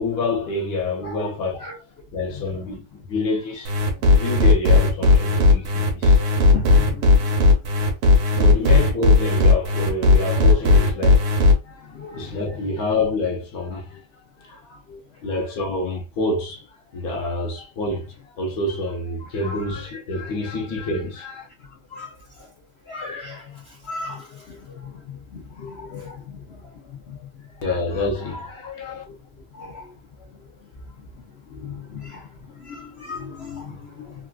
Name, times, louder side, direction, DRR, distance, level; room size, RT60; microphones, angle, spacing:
voice 1, 0.0-1.6 2.1-3.7 4.1-6.2 8.3-14.8 15.2-16.6 16.9-21.5 27.6-29.0, left 2 dB, 70° left, 1.2 m, -27 dB
sound 1, 3.6-11.5, left 3 dB, 70° right, 1.2 m, -16 dB
voice 2, 6.1-7.3 11.9-12.8 14.9-15.0 17.1-17.2 19.4-19.6 21.9-22.1 22.9-23.5 23.8-24.9 25.3-26.4 27.1-27.2 27.6-27.8 28.3-28.5 28.9-29.0 29.6-29.9 31.5-32.3 32.6-34.1, left 3 dB, 90° left, 0.5 m, -36 dB
3.6 x 2.4 x 2.2 m
omnidirectional pair, 1.8 m